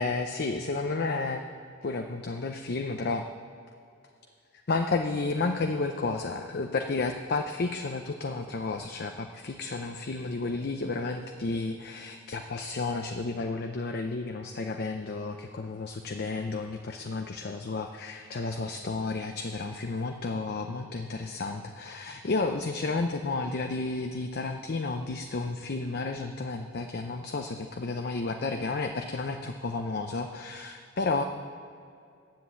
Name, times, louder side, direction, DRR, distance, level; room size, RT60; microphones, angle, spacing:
voice 1, 0.0-1.5 1.8-3.3 4.7-31.2, left 3 dB, 50° left, 5 dB, 0.5 m, -32 dB
10.5 x 7.6 x 8.2 m, 2.5 s
head